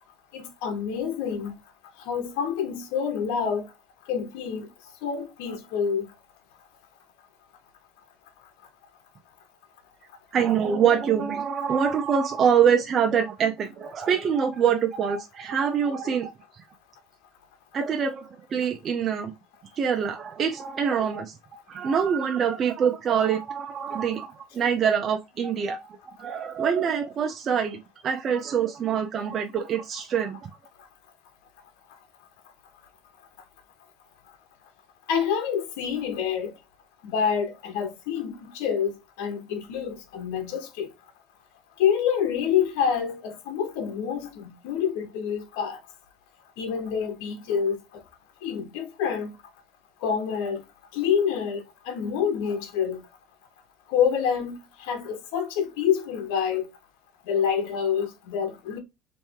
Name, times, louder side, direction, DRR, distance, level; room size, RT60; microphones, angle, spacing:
voice 1, 0.3-1.6 2.0-3.7 4.1-4.7 5.0-6.1 35.1-36.5 37.0-40.9 41.8-45.8 46.6-47.8 48.4-49.3 50.0-50.6 50.9-53.0 53.9-56.7 57.3-58.8, left 7 dB, 90° left, 1.1 m, -27 dB
voice 2, 10.3-16.6 17.7-19.3 19.7-30.4, right 7 dB, 40° right, 0.6 m, -25 dB
3.4 x 3.1 x 4.5 m
cardioid pair, 130°, 0 cm